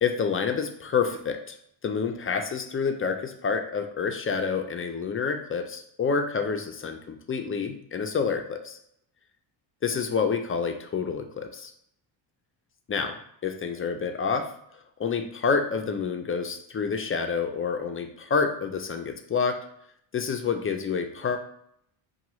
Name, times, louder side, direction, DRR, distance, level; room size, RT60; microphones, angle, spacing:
voice 1, 0.0-1.6 1.8-8.8 9.8-11.7 12.9-13.1 13.4-14.5 15.0-19.6 20.1-21.4, left 5 dB, 25° left, 5 dB, 0.5 m, -28 dB
5.7 x 2.4 x 3.0 m, 0.70 s
cardioid pair, 90°, 49 cm